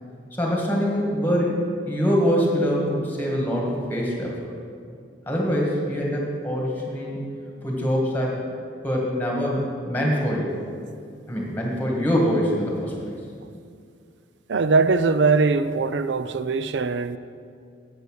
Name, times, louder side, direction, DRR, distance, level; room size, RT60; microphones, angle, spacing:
voice 1, 0.3-1.6 1.9-4.5 5.3-7.2 7.6-8.4 8.8-10.5 11.3-13.1, equal, 10° left, 1.9 m, -24 dB
voice 2, 14.5-17.2, right 4 dB, 65° right, 0.4 m, -21 dB
8.1 x 8.1 x 6.4 m
head